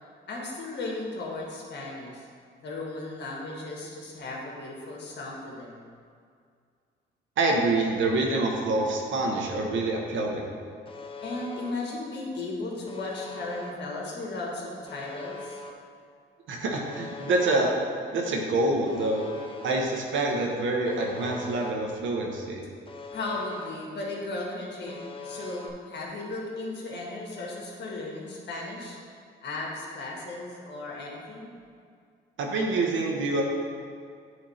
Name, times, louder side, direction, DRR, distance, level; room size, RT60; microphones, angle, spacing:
voice 1, 0.3-2.2 2.6-5.8 11.2-15.6 23.1-29.0 29.4-31.5, left 2 dB, 60° left, -2 dB, 1.7 m, -36 dB
voice 2, 7.4-10.5 16.5-17.7 18.1-19.3 19.6-22.6 32.4-33.4, right 2 dB, 75° right, 0 dB, 1.2 m, -26 dB
Alarm, 10.9-11.7 12.9-13.7 14.9-15.7 16.9-17.7 18.9-19.7 20.9-21.7 22.9-23.7 24.9-25.7, left 3 dB, 25° left, 0.7 m, -41 dB
9.2 x 3.6 x 4.3 m, 2.2 s
cardioid pair, 90°, 20 cm